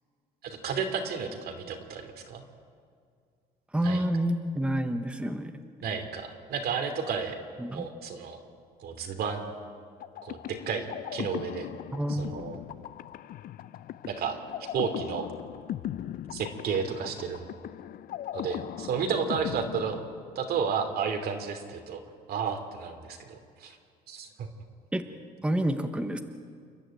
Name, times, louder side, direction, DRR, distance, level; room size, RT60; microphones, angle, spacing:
voice 1, 0.4-2.4 3.8-4.0 5.8-7.4 7.7-8.4 8.8-9.5 10.2-11.7 12.1-12.6 14.0-15.3 16.3-17.5 18.3-20.0 20.3-22.0 22.3-23.8 24.1-24.5, right 6 dB, 65° right, 6 dB, 2.9 m, -32 dB
voice 2, 3.7-5.5 7.6-7.8 11.9-12.5 24.9-25.0 25.4-26.2, right 1 dB, 5° right, 7 dB, 1.2 m, -28 dB
sound 1, 10.0-20.7, left 12 dB, 60° left, 0.6 m, -39 dB
28.5 x 11.0 x 9.0 m, 2.2 s
cardioid pair, 110°, 17 cm